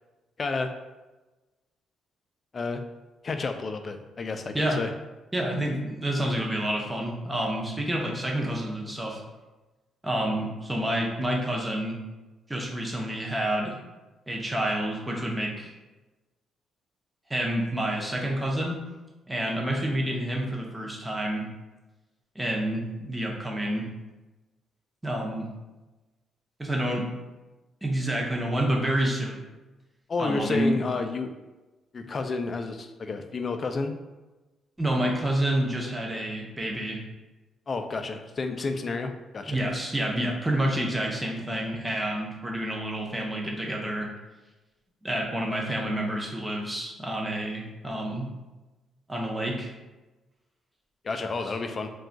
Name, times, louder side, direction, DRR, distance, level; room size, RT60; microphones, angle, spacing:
voice 1, 0.4-0.7 2.5-2.8 3.2-4.9 30.1-31.3 31.9-33.9 37.7-39.6 51.0-51.9, left 3 dB, 40° left, 7 dB, 0.3 m, -30 dB
voice 2, 5.3-9.2 10.0-12.0 12.5-13.8 14.3-15.7 17.3-18.8 19.3-21.5 22.4-23.9 25.0-25.5 26.6-27.1 27.8-29.4 30.2-30.8 34.8-37.0 39.5-44.1 45.0-48.3 49.1-49.7, right 1 dB, 15° right, -1 dB, 0.6 m, -28 dB
2.3 x 2.3 x 3.8 m, 1.1 s
cardioid pair, 90°, 0 cm